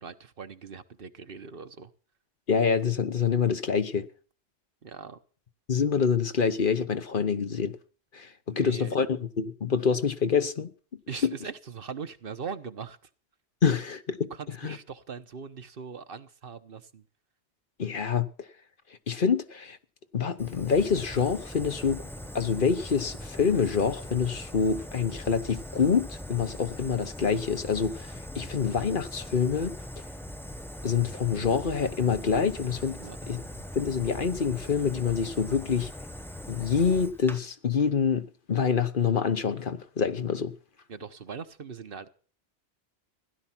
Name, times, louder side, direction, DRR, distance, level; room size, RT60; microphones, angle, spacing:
voice 1, 0.0-1.9 4.8-5.2 8.5-9.0 11.1-13.0 14.3-17.0 33.0-33.2 40.9-42.1, right 6 dB, 60° right, 1.2 m, -40 dB
voice 2, 2.5-4.1 5.7-7.8 8.1-8.3 8.5-10.7 11.2-11.3 13.6-14.3 14.6-14.8 17.8-18.3 19.1-19.8 20.1-22.1 22.3-29.8 30.8-33.0 33.3-33.4 33.7-35.9 36.5-40.5, left 6 dB, 55° left, 1.1 m, -26 dB
Fire, 20.4-37.4, equal, ahead, 0.8 m, -41 dB
16.0 x 11.0 x 5.9 m
omnidirectional pair, 1.1 m